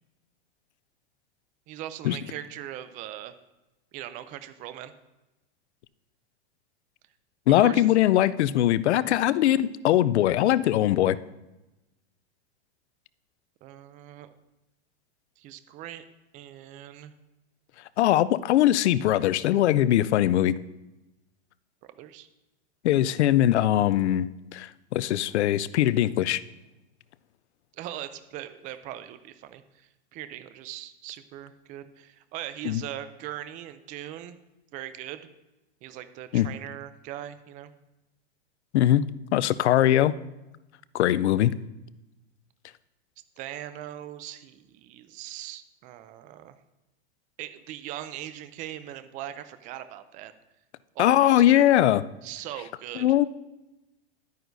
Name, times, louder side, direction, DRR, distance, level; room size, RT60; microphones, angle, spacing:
voice 1, 1.7-3.3 3.9-4.9 7.5-7.8 13.6-14.3 15.4-16.0 16.3-17.1 21.8-22.3 27.7-34.4 34.7-35.3 35.8-37.7 43.4-46.6 47.4-50.3 51.0-51.6 52.2-53.1, right 12 dB, 25° right, 12 dB, 0.4 m, -40 dB
voice 2, 7.5-11.2 18.0-20.5 22.8-26.4 32.6-32.8 36.3-36.5 38.7-39.0 39.3-40.1 40.9-41.5 51.0-52.0 53.0-53.2, left 13 dB, 90° left, 17 dB, 0.5 m, -21 dB
12.0 x 9.2 x 2.7 m, 0.99 s
supercardioid pair, 140°, 33 cm